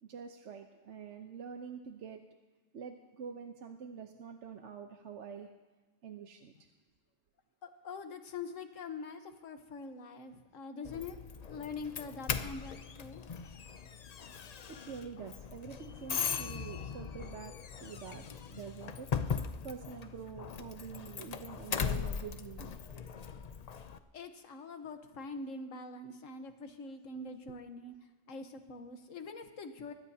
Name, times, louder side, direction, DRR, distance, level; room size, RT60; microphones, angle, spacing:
voice 1, 0.0-2.2 2.7-5.5 6.0-6.7 14.7-19.1 19.3-22.7, right 6 dB, 55° right, 4 dB, 1.1 m, -46 dB
voice 2, 7.6-11.2 11.4-13.2 24.1-27.9 28.3-29.9, left 4 dB, 60° left, 7 dB, 1.5 m, -44 dB
Doorbell, 10.8-24.0, left 6 dB, 85° left, 0.3 m, -39 dB
24.5 x 20.5 x 2.8 m, 1.2 s
omnidirectional pair, 1.5 m